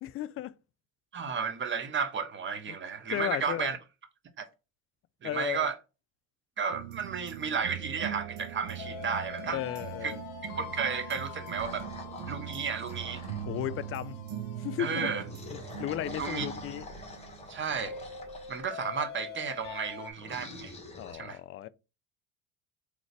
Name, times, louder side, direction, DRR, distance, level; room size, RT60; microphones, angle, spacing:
voice 1, 0.0-0.5 2.7-2.8 3.1-3.7 5.2-5.7 9.5-10.2 13.5-14.2 14.6-15.1 15.5-16.9 21.0-21.7, left 13 dB, 40° left, 0.4 m, -35 dB
voice 2, 1.1-3.8 4.4-4.5 5.2-5.7 6.6-9.6 10.0-10.1 10.5-11.9 12.3-13.2 14.8-15.2 16.2-16.5 17.5-17.9 18.5-20.7 21.1-21.4, right 6 dB, 30° right, 1.0 m, -33 dB
sound 1, 6.7-17.8 18.1-18.2, right 10 dB, 70° right, 1.2 m, -42 dB
sound 2, 8.8-20.1, left 6 dB, 55° left, 1.0 m, -45 dB
sound 3, 11.6-13.9 15.0-18.6 20.2-21.1, left 2 dB, 15° left, 1.8 m, -45 dB
3.8 x 3.2 x 3.3 m
hypercardioid pair, 80°, 37 cm